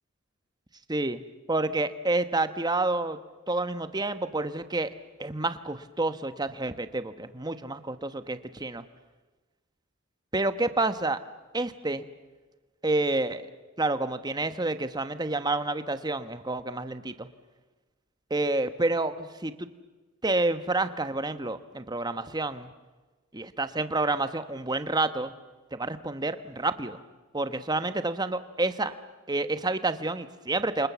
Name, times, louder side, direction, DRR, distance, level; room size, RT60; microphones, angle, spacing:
voice 1, 0.9-1.2 1.5-3.2 3.5-4.9 5.2-8.8 10.3-11.2 11.5-12.0 12.8-13.5 13.8-17.3 18.3-19.7 20.2-22.7 23.3-25.3 25.7-27.0 27.3-28.9 29.3-30.9, right 2 dB, 20° right, 10 dB, 1.2 m, -29 dB
29.0 x 26.5 x 7.0 m, 1.2 s
head